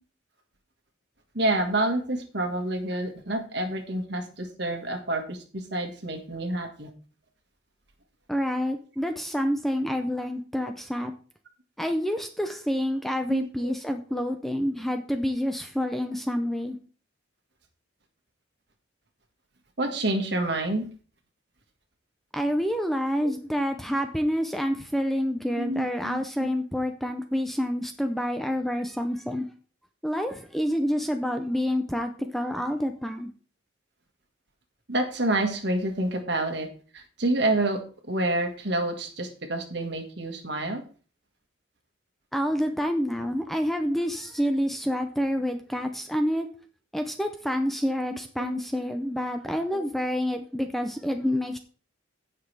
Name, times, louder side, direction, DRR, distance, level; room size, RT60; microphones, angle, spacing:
voice 1, 1.3-6.9 13.3-13.7 14.1-14.2 19.8-20.8 25.6-26.5 32.2-32.3 34.9-36.7 36.9-37.8 38.1-40.8 48.4-48.6 49.7-49.8, right 1 dB, 55° right, 5 dB, 1.7 m, -28 dB
voice 2, 8.3-11.1 11.8-16.8 22.3-29.5 30.0-33.3 42.3-46.5 46.9-51.6, equal, ahead, 6 dB, 0.5 m, -28 dB
16.0 x 5.9 x 3.4 m, 0.40 s
head